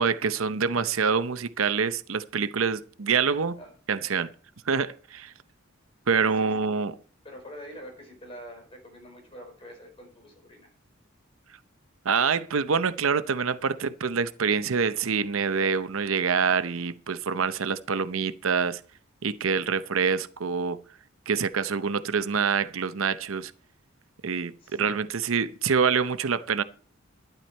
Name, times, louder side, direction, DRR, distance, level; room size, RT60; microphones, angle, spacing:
voice 1, 0.0-3.6 3.9-4.3 4.7-5.3 6.1-7.0 12.0-18.8 19.2-20.8 21.3-23.5 24.2-26.6, right 5 dB, 90° right, 0.7 m, -26 dB
voice 2, 3.6-4.0 6.4-6.6 7.2-10.7 24.6-24.8, equal, 30° left, 4.9 m, -45 dB
12.0 x 10.5 x 4.4 m
head